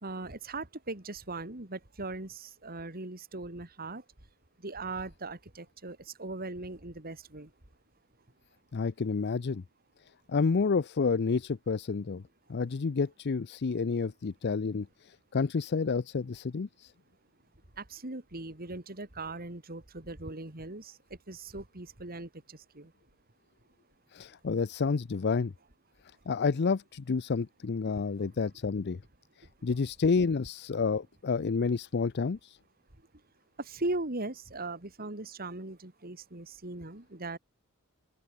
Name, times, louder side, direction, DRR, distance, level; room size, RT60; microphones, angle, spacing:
voice 1, 0.0-4.0 4.6-7.5 17.8-20.9 21.3-22.3 22.7-22.9 27.9-28.0 33.6-37.4, right 2 dB, 45° right, 2.7 m, -39 dB
voice 2, 8.7-9.6 10.3-12.2 12.5-14.9 15.3-16.9 24.1-25.5 26.3-29.0 29.6-32.6, left 4 dB, 50° left, 0.5 m, -29 dB
open air
head